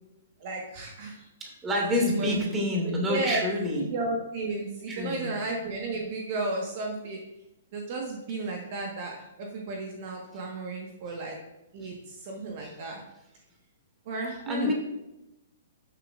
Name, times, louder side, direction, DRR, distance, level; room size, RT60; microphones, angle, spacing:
voice 1, 0.4-1.2 1.7-2.4 2.8-3.4 3.7-7.2 7.7-11.4 11.7-13.0 14.0-14.7, right 3 dB, 45° right, 0 dB, 1.5 m, -33 dB
voice 2, 1.4-3.8 4.9-5.3 11.8-11.9 14.5-14.7, left 1 dB, 15° right, 0 dB, 2.3 m, -28 dB
12.0 x 6.9 x 2.5 m, 0.92 s
figure-of-eight pair, 120°, 0 cm